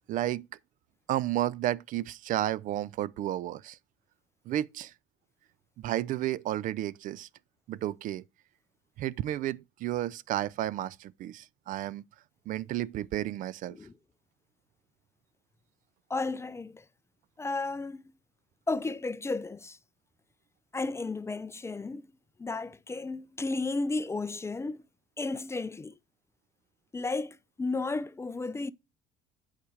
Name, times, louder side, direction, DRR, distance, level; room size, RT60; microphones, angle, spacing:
voice 1, 0.1-0.5 1.1-3.8 4.5-4.9 5.8-7.3 7.7-8.2 9.0-12.0 12.5-13.8, right 13 dB, 50° right, 0.4 m, -32 dB
voice 2, 16.1-16.8 17.4-18.0 18.7-19.8 20.7-22.1 22.4-24.8 25.2-26.0 26.9-28.7, left 3 dB, 15° left, 0.4 m, -33 dB
8.3 x 4.9 x 3.3 m
hypercardioid pair, 75°, 17 cm